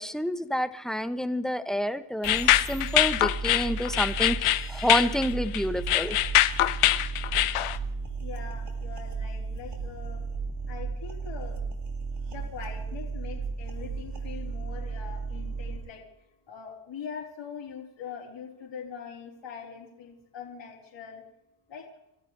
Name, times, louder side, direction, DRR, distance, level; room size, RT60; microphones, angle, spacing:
voice 1, 0.0-6.2, equal, ahead, 10 dB, 0.9 m, -28 dB
sound 1, 2.2-7.8, left 14 dB, 85° left, 0.8 m, -24 dB
sound 2, 2.2-15.8, right 4 dB, 55° right, 2.5 m, -35 dB
voice 2, 8.2-10.2 10.7-11.6 12.3-16.0 16.5-21.2 21.7-21.9, left 7 dB, 60° left, -3 dB, 4.2 m, -42 dB
29.5 x 14.0 x 3.3 m, 0.86 s
cardioid pair, 110°, 50 cm